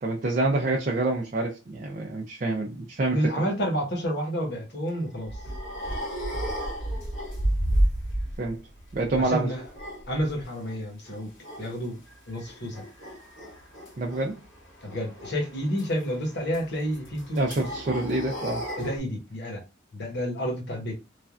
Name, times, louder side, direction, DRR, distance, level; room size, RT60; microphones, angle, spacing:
voice 1, 0.0-3.2 8.4-8.6 8.9-9.5 14.0-14.4 17.3-18.6, right 2 dB, 40° right, 0.4 m, -27 dB
voice 2, 3.1-5.4 9.2-9.7 10.1-11.3 11.6-12.0 12.3-12.8 14.8-17.5 18.8-19.6 19.9-21.0, equal, 55° left, 1.0 m, -30 dB
sound 1, 4.9-8.5 8.8-10.8 11.1-11.7 12.1-19.0, right 1 dB, 90° left, 1.6 m, -32 dB
3.2 x 2.3 x 2.4 m
head